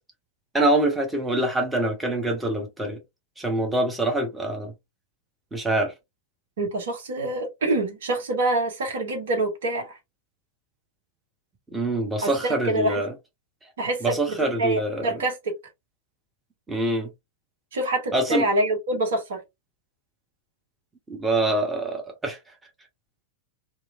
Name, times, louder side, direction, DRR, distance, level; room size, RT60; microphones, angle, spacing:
voice 1, 0.5-3.0 3.4-4.7 5.5-5.9 11.7-13.1 13.6-13.7 14.0-15.1 16.7-17.1 18.1-18.5 21.1-22.4, right 1 dB, 10° right, 0.9 m, -25 dB
voice 2, 6.6-10.0 12.2-13.0 13.8-15.5 17.7-19.4, right 2 dB, 60° right, 1.0 m, -26 dB
3.0 x 2.7 x 2.4 m
figure-of-eight pair, 90°, 0 cm